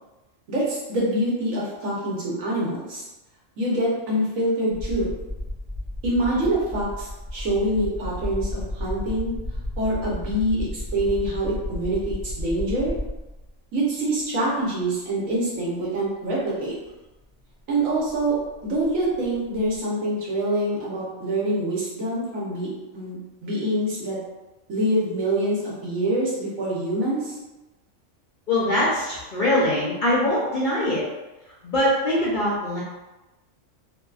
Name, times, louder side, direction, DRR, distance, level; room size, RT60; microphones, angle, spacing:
voice 1, 0.5-3.0 3.6-5.1 6.0-9.3 9.8-12.9 13.7-16.7 17.7-22.7 22.9-24.2 24.7-27.4, right 1 dB, 85° right, -5 dB, 1.3 m, -25 dB
sound 1, 4.7-13.5 14.6-14.7 16.9-17.0 17.2-19.8, left 1 dB, 35° right, 1.2 m, -33 dB
voice 2, 28.5-31.0 31.6-32.8, left 1 dB, 55° left, -6 dB, 0.6 m, -22 dB
2.6 x 2.6 x 2.3 m, 1.1 s
omnidirectional pair, 1.3 m